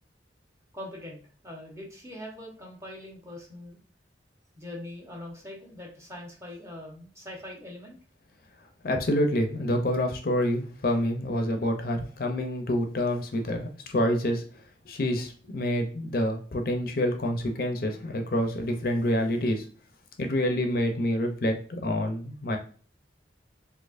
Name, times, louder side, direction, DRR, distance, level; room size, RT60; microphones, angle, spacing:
voice 1, 0.7-3.8 4.5-8.0, left 1 dB, 15° right, -2 dB, 0.9 m, -42 dB
voice 2, 8.8-14.4 14.9-19.6 20.2-22.6, left 1 dB, 50° left, 4 dB, 0.5 m, -27 dB
4.1 x 2.8 x 2.5 m, 0.40 s
head